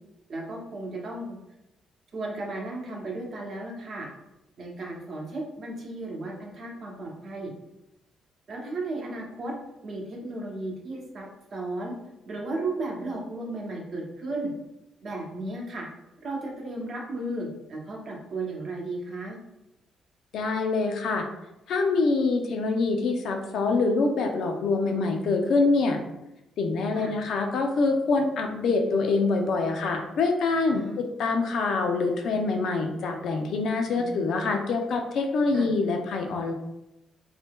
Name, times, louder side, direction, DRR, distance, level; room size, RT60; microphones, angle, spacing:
voice 1, 0.3-1.4 2.1-4.1 4.6-7.5 8.5-9.5 9.8-11.9 12.3-14.5 15.0-15.9 16.2-19.4 26.9-27.1 30.7-31.0 33.9-34.2 35.5-35.7, right 2 dB, 55° right, -1 dB, 0.8 m, -34 dB
voice 2, 20.3-21.2 21.7-26.0 26.6-36.5, left 3 dB, 70° left, 3 dB, 0.5 m, -25 dB
2.7 x 2.2 x 3.4 m, 0.91 s
cardioid pair, 90°, 0 cm